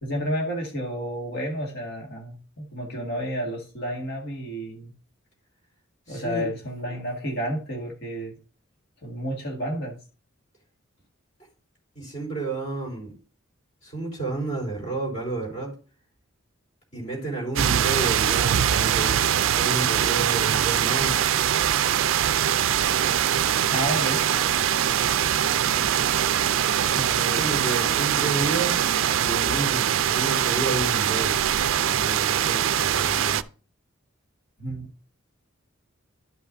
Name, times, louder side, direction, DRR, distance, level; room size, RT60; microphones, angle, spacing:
voice 1, 0.0-4.9 6.1-8.4 9.0-10.0 23.7-24.2 25.6-25.8 26.9-27.7 34.6-34.9, equal, 55° left, -1 dB, 1.8 m, -31 dB
voice 2, 6.1-6.5 12.0-13.2 13.8-15.7 16.9-21.2 25.6-26.0 27.3-31.4 31.9-33.4, right 3 dB, 30° left, -2 dB, 3.6 m, -31 dB
sound 1, 17.6-33.4, right 10 dB, 65° right, 0.3 m, -22 dB
11.5 x 5.7 x 2.6 m, 0.37 s
head